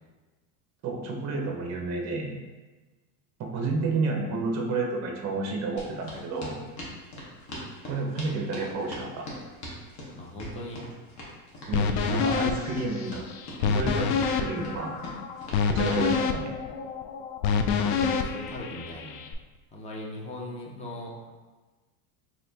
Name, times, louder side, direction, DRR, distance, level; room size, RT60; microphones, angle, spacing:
voice 1, 0.8-2.3 3.4-6.6 7.9-9.3 11.7-13.2 13.6-14.9 15.7-16.5, right 3 dB, 35° right, 1 dB, 0.7 m, -30 dB
sound 1, 5.8-16.0, left 1 dB, 35° left, 1.1 m, -41 dB
voice 2, 10.2-10.9 17.8-19.2 19.7-21.3, left 1 dB, 15° left, -3 dB, 0.5 m, -39 dB
sound 2, 11.7-19.3, left 5 dB, 80° left, 0.5 m, -27 dB
4.2 x 2.9 x 2.7 m, 1.3 s
supercardioid pair, 125°, 47 cm